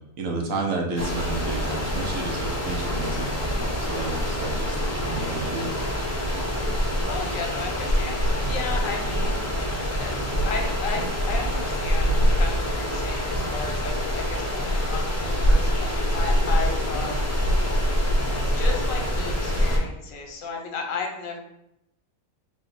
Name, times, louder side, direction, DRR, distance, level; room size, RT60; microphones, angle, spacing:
voice 1, 0.2-5.7, right 3 dB, 85° right, 1 dB, 1.1 m, -31 dB
sound 1, 1.0-19.8, equal, 20° left, 0.4 m, -25 dB
voice 2, 7.1-9.5 10.0-15.1 15.4-17.4 18.6-21.4, left 4 dB, 75° left, 2 dB, 1.1 m, -34 dB
4.1 x 2.2 x 4.0 m, 0.82 s
omnidirectional pair, 1.4 m